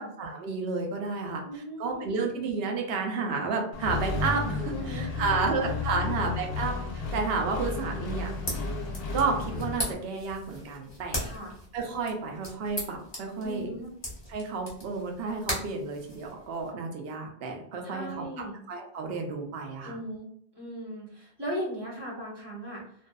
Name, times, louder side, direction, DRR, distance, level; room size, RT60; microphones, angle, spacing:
voice 1, 0.0-8.3 9.1-11.3 11.7-13.7 14.3-18.2 18.7-20.0, right 4 dB, 75° right, 2 dB, 0.8 m, -31 dB
voice 2, 1.4-2.2 4.7-6.2 11.2-11.5 13.4-13.9 17.8-18.6 19.8-20.3 20.5-22.8, equal, 25° right, -4 dB, 0.8 m, -38 dB
Accelerating revving vroom, 3.7-9.9, left 4 dB, 75° left, 0.8 m, -33 dB
sound 1, 8.1-16.7, left 1 dB, 30° left, 0.7 m, -39 dB
2.5 x 2.3 x 2.2 m, 0.65 s
omnidirectional pair, 1.0 m